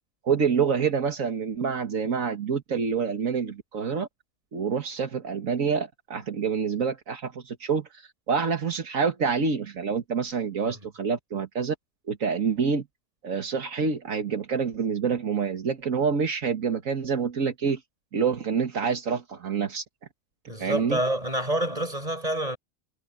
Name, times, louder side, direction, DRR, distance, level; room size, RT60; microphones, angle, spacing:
voice 1, 0.2-4.1 4.5-11.8 12.1-12.9 13.2-17.8 18.1-19.8 20.6-21.0, right 6 dB, 75° right, 1.9 m, -27 dB
voice 2, 20.5-22.6, right 1 dB, 30° right, 6.6 m, -27 dB
omnidirectional pair, 1.4 m